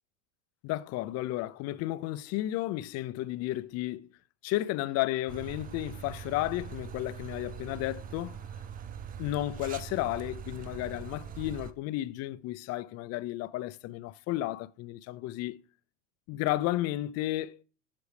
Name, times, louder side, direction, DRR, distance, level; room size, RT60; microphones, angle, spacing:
voice 1, 0.6-4.1 4.4-8.4 9.2-15.6 16.3-17.6, left 15 dB, 45° left, 0.5 m, -33 dB
sound 1, 5.3-11.7, right 8 dB, 25° right, 0.5 m, -42 dB
8.3 x 6.8 x 3.3 m
hypercardioid pair, 105°, 36 cm